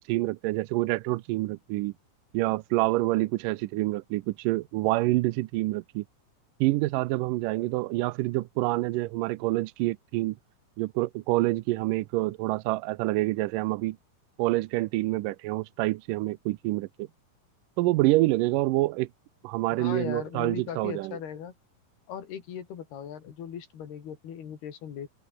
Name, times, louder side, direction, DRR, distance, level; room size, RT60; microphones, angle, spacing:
voice 1, 0.1-1.9 2.3-6.0 6.6-10.4 10.8-14.0 14.4-17.1 17.8-19.1 19.4-21.2, right 19 dB, 80° right, 2.0 m, -27 dB
voice 2, 19.8-21.5 22.1-25.1, left 8 dB, 90° left, 5.1 m, -38 dB
open air
omnidirectional pair, 4.4 m